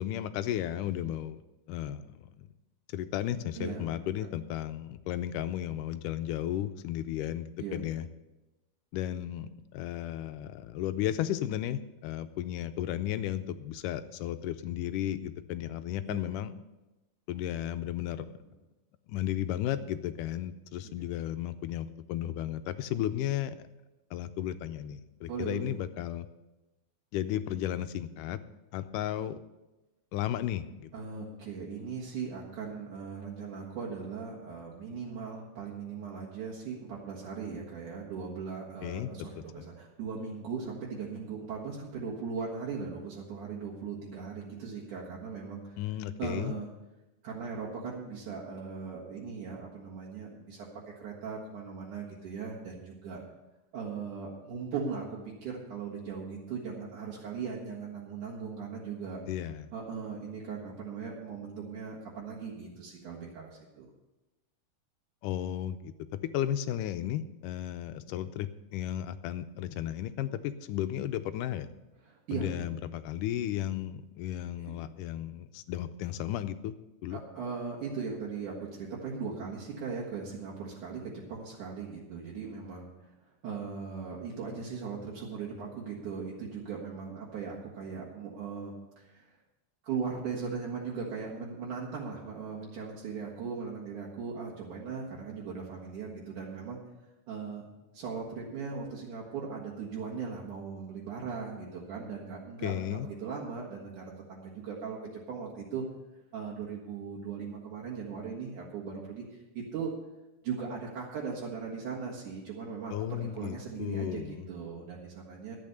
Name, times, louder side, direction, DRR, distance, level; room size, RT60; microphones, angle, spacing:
voice 1, 0.0-1.4 1.7-2.5 2.9-8.1 8.9-16.5 17.3-18.3 19.1-23.6 24.1-26.3 27.1-28.4 28.7-29.4 30.1-30.9 38.8-39.1 39.6-39.7 45.8-46.5 59.3-59.7 65.2-65.9 66.3-71.7 72.3-76.7 77.0-77.2 102.6-103.1 112.9-114.5, left 12 dB, 85° left, 11 dB, 2.1 m, -34 dB
voice 2, 3.5-4.3 7.6-7.8 16.0-16.2 20.8-20.9 25.3-25.7 30.9-45.8 46.2-46.7 47.2-50.7 51.0-53.2 53.7-55.1 55.4-59.2 59.7-63.9 72.0-72.5 74.6-74.7 77.1-82.9 83.4-89.3 89.8-96.8 97.3-97.6 97.9-105.8 106.3-109.9 110.4-115.6, right 5 dB, 70° right, -5 dB, 3.1 m, -39 dB
12.0 x 8.5 x 6.8 m, 1.0 s
omnidirectional pair, 3.8 m